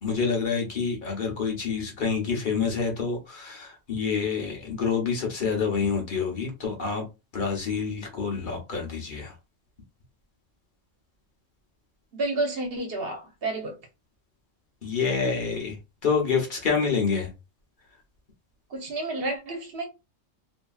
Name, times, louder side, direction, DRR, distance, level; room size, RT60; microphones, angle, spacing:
voice 1, 0.0-7.1 7.3-9.3 14.8-15.8 16.0-17.3, left 5 dB, 45° left, 0.9 m, -27 dB
voice 2, 12.1-13.8 18.7-19.9, right 2 dB, 55° right, 1.0 m, -30 dB
2.8 x 2.6 x 2.3 m
omnidirectional pair, 1.3 m